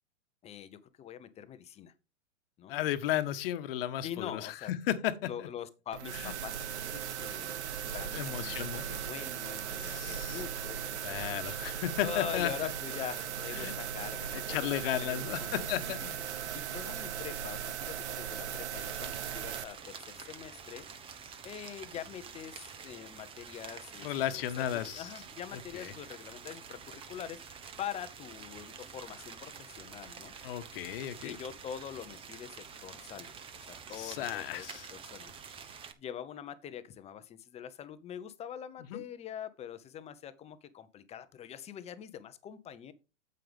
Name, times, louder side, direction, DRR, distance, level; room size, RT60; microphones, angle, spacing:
voice 1, 0.4-1.9 2.6-2.8 4.0-4.7 5.2-7.5 7.8-8.6 8.9-11.0 11.4-11.7 11.9-15.9 16.4-30.3 31.2-34.7 34.9-35.3 36.0-42.9, left 9 dB, 15° left, 0.8 m, -44 dB
voice 2, 2.7-5.1 5.4-5.5 6.1-6.3 8.1-8.9 9.8-10.4 11.0-12.7 13.5-13.7 14.3-16.2 24.0-25.1 25.7-25.9 30.4-31.4 33.9-34.9 38.9-39.0, left 12 dB, 50° left, 1.3 m, -34 dB
sound 1, 5.9-19.6, right 9 dB, 60° right, 1.0 m, -38 dB
sound 2, 18.8-35.9, right 6 dB, 15° right, 0.8 m, -48 dB
9.0 x 7.8 x 3.5 m
hypercardioid pair, 125°, 38 cm